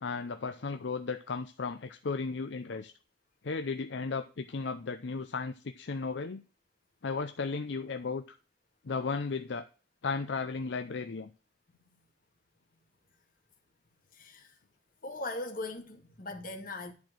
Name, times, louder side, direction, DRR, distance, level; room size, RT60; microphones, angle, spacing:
voice 1, 0.0-2.9 3.4-6.4 7.0-8.2 8.8-9.6 10.0-11.3, left 4 dB, 65° left, 0.6 m, -35 dB
voice 2, 14.1-14.6 15.0-16.9, left 2 dB, 50° left, 1.8 m, -39 dB
10.5 x 4.5 x 6.1 m
head